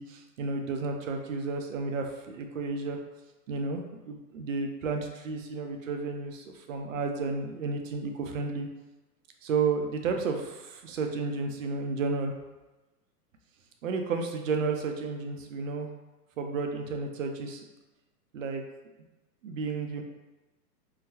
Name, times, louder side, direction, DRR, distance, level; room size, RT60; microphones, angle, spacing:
voice 1, 0.0-3.0 3.5-8.7 9.4-12.3 13.8-15.9 16.4-17.6 18.3-18.6 19.4-20.0, right 4 dB, 55° right, 4 dB, 0.5 m, -32 dB
3.8 x 2.0 x 2.8 m, 1.1 s
hypercardioid pair, 160°, 50 cm